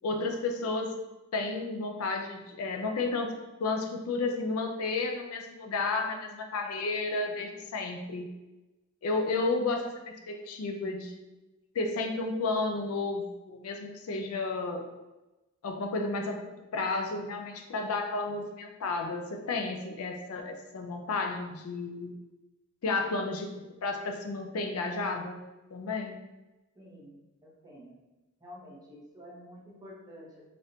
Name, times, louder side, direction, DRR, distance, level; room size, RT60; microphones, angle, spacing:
voice 1, 0.0-1.0 1.3-8.3 9.0-11.3 11.7-14.9 15.6-16.4 16.7-22.1 22.8-23.5 23.8-25.4 25.7-26.2, left 3 dB, 90° left, 4 dB, 0.4 m, -32 dB
voice 2, 26.7-28.0 28.4-30.4, equal, 20° right, -6 dB, 0.8 m, -50 dB
3.4 x 2.5 x 2.7 m, 1.0 s
head